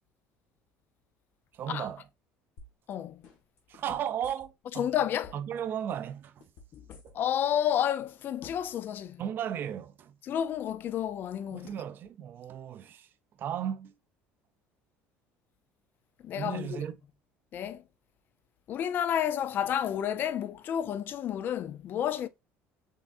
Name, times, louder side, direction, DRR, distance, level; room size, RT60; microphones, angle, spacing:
voice 1, 1.5-2.0 3.7-4.9 5.3-6.4 7.0-7.2 9.2-10.2 11.5-13.1 13.4-13.9 16.3-16.9, right 9 dB, 40° right, 0.5 m, -35 dB
sound 1, 2.6-2.9 3.2-4.8 5.1-5.6 5.9-7.4 7.7-7.8, left 3 dB, 70° left, 1.8 m, -52 dB
voice 2, 2.9-3.2 4.8-5.3 6.7-9.2 10.2-11.7 16.2-16.8 17.5-17.8 18.7-22.3, left 10 dB, 40° left, 0.4 m, -31 dB
5.5 x 3.6 x 2.5 m
cardioid pair, 145°, 5 cm